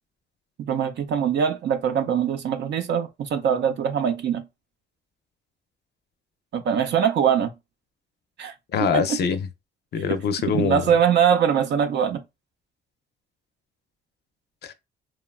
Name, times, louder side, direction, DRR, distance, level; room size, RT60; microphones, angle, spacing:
voice 1, 0.6-4.4 6.5-7.5 8.4-8.5 8.9-9.0 10.5-12.2, right 8 dB, 60° right, 0.5 m, -22 dB
voice 2, 8.7-9.5 9.9-10.9 14.6-14.7, left 6 dB, 55° left, 0.5 m, -24 dB
3.0 x 2.3 x 2.3 m
cardioid pair, 90°, 20 cm